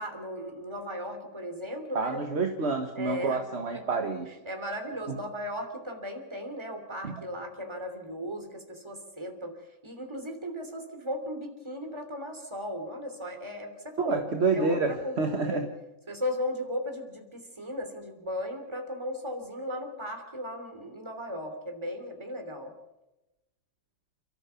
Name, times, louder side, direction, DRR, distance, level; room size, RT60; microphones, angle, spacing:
voice 1, 0.0-2.2 3.0-3.4 3.7-4.0 4.3-14.2 14.5-15.7 16.1-22.7, equal, 15° right, 5 dB, 3.1 m, -36 dB
voice 2, 1.9-4.2 7.0-7.1 14.0-15.7, right 3 dB, 40° right, 5 dB, 1.6 m, -28 dB
30.0 x 13.5 x 7.1 m, 0.97 s
omnidirectional pair, 2.0 m